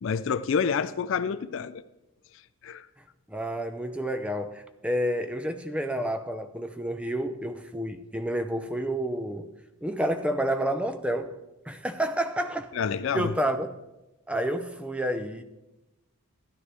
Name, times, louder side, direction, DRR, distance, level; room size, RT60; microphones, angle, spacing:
voice 1, 0.0-1.8 2.6-2.9 12.8-13.3, left 6 dB, 60° left, 0.3 m, -28 dB
voice 2, 3.3-9.5 9.8-11.4 11.7-12.7 13.1-13.7 14.3-15.4, right 1 dB, 5° right, 0.5 m, -29 dB
12.5 x 11.0 x 3.4 m
head